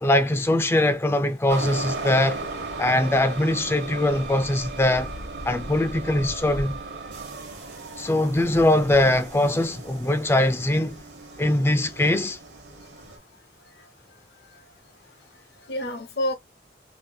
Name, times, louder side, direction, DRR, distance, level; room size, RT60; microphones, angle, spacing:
voice 1, 0.0-2.4 2.8-5.1 5.5-6.8 8.0-11.0 11.4-12.4, left 1 dB, 15° left, 0.3 m, -22 dB
sound 1, 1.5-13.2, right 3 dB, 70° right, 1.0 m, -36 dB
voice 2, 13.1-14.7 15.0-16.3, left 1 dB, 60° left, 0.6 m, -34 dB
3.2 x 2.8 x 2.3 m
head